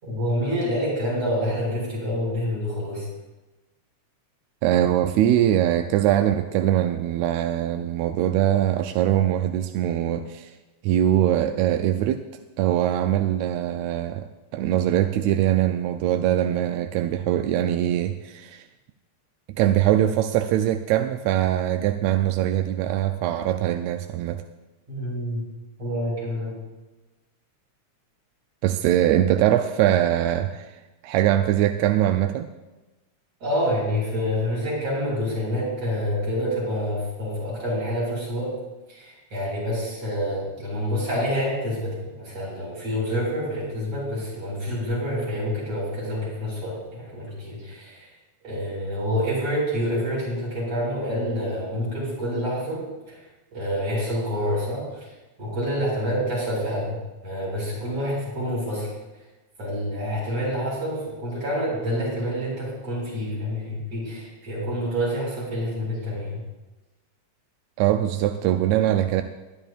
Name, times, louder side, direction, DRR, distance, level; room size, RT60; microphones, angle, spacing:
voice 1, 0.0-3.1 24.9-25.4 25.8-26.6 33.4-38.6 38.9-48.1 48.4-53.2 53.5-55.1 55.4-58.9 59.6-66.4, equal, 55° right, -5 dB, 6.0 m, -27 dB
voice 2, 4.6-10.5 10.8-12.3 12.6-18.6 19.5-24.4 28.6-32.5 67.8-69.2, right 12 dB, 80° right, 7 dB, 1.6 m, -22 dB
21.5 x 10.0 x 2.4 m, 1.1 s
omnidirectional pair, 3.4 m